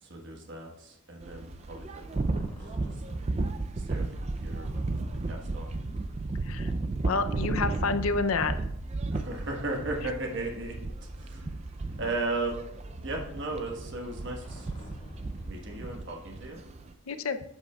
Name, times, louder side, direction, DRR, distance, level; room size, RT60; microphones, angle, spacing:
voice 1, 0.0-2.5 3.1-3.3 3.8-4.1 4.4-4.7 5.3-5.7 9.1-10.7 11.2-11.5 12.0-12.6 13.0-14.7 15.5-16.6, right 2 dB, 55° right, 1 dB, 1.4 m, -36 dB
sound 1, 1.2-16.9, right 3 dB, 30° right, 0.4 m, -34 dB
sound 2, 1.4-15.9, left 1 dB, 30° left, 1.4 m, -48 dB
voice 2, 7.0-8.5 17.1-17.4, left 4 dB, 70° left, 10 dB, 0.5 m, -28 dB
12.0 x 8.0 x 2.3 m, 0.79 s
head